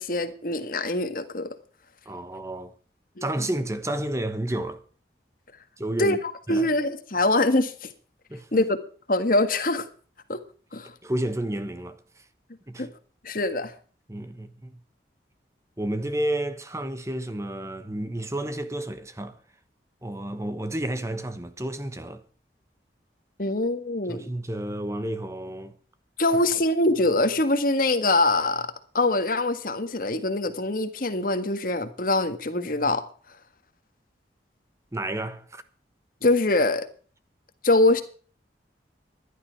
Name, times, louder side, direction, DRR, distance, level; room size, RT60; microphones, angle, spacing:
voice 1, 0.0-1.5 3.2-3.3 6.0-7.9 8.5-8.8 9.1-9.9 10.3-10.4 10.7-10.9 12.8-12.9 13.2-13.7 23.4-24.2 26.2-33.0 36.2-36.9 37.6-38.0, left 2 dB, 50° left, 1.7 m, -24 dB
voice 2, 2.0-2.7 3.2-4.8 5.8-6.2 6.5-6.7 8.3-8.7 11.0-12.0 12.7-12.9 14.1-14.8 15.8-19.4 20.0-22.2 24.1-25.7 34.9-35.6, right 1 dB, 15° right, 1.1 m, -31 dB
15.5 x 11.5 x 4.6 m
head